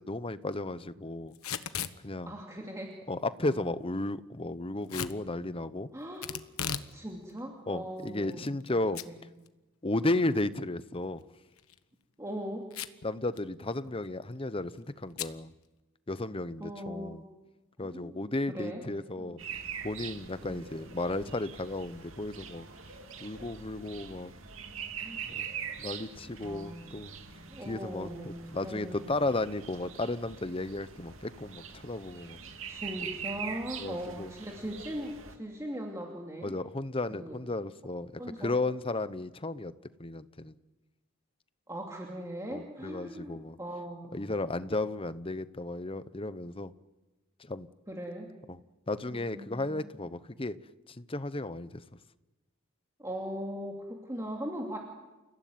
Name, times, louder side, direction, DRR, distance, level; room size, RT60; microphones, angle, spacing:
voice 1, 0.0-1.3 2.0-2.3 3.1-5.9 7.7-9.0 9.8-11.2 13.0-15.5 16.1-17.2 17.8-19.4 19.8-22.7 23.2-24.3 25.3-25.4 25.8-27.1 27.7-32.4 33.8-34.3 36.4-38.1 38.4-39.7 40.0-40.5 42.5-43.6 44.1-46.7 47.5-47.7 48.5-48.6 48.9-50.6 51.0-51.8, left 2 dB, 25° left, 14 dB, 0.9 m, -34 dB
Packing tape duct tape / Tearing, 1.3-2.0 4.9-5.2 6.2-6.9 7.3-7.4 8.1-8.7 9.0-9.1 9.5-9.6 11.5-11.8 12.7-13.1 13.4-13.5 13.7-14.1 15.2-15.4, left 8 dB, 80° left, 1.2 m, -36 dB
voice 2, 2.3-3.0 3.4-3.7 5.9-6.3 6.9-8.8 9.0-9.2 10.0-10.3 12.2-12.7 16.6-17.3 17.8-18.8 19.2-19.4 20.4-20.6 25.0-25.2 26.4-29.2 32.7-36.6 37.1-37.4 38.2-38.5 41.7-44.3 47.9-48.3 49.1-49.9 53.0-54.8, equal, 15° right, 0 dB, 2.7 m, -40 dB
sound 1, 19.4-35.4, right 7 dB, 65° right, 2.6 m, -43 dB
29.5 x 16.5 x 9.4 m, 1.1 s
head